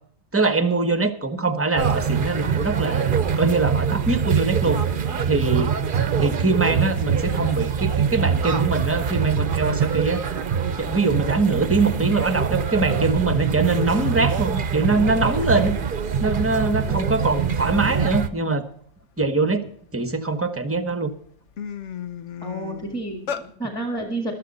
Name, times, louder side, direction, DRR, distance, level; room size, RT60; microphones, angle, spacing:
voice 1, 0.3-4.8 5.3-5.7 6.1-10.2 10.8-15.8 16.2-18.6 19.2-21.1, right 3 dB, 10° right, 10 dB, 1.0 m, -23 dB
sound 1, 1.8-18.3, right 7 dB, 50° right, 0.9 m, -24 dB
sound 2, 17.4-17.5 17.7-18.2 18.6-20.2 20.8-20.9 21.2-23.5, left 8 dB, 80° left, 1.2 m, -34 dB
voice 2, 22.4-24.3, right 2 dB, 5° left, 4 dB, 1.8 m, -30 dB
14.5 x 12.5 x 4.1 m, 0.62 s
omnidirectional pair, 1.2 m